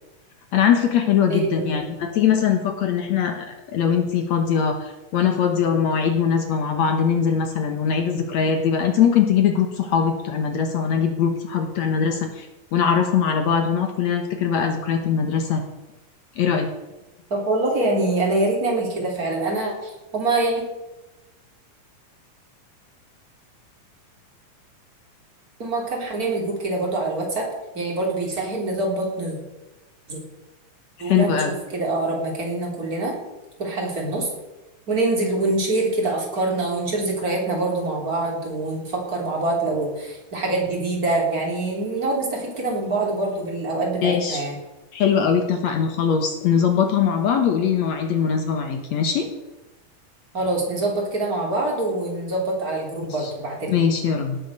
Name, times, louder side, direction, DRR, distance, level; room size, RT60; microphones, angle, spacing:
voice 1, 0.5-15.6 16.4-16.7 31.0-31.5 44.0-44.4 44.9-49.3 53.2-53.3 53.7-54.4, left 7 dB, 65° left, 5 dB, 2.2 m, -21 dB
voice 2, 1.3-1.8 17.3-20.6 25.6-27.5 27.7-29.4 30.1-30.2 31.0-31.4 31.7-33.2 33.6-34.3 34.9-44.6 50.3-53.8, right 2 dB, 25° right, -1 dB, 3.7 m, -25 dB
17.5 x 8.6 x 6.5 m, 1.0 s
omnidirectional pair, 3.6 m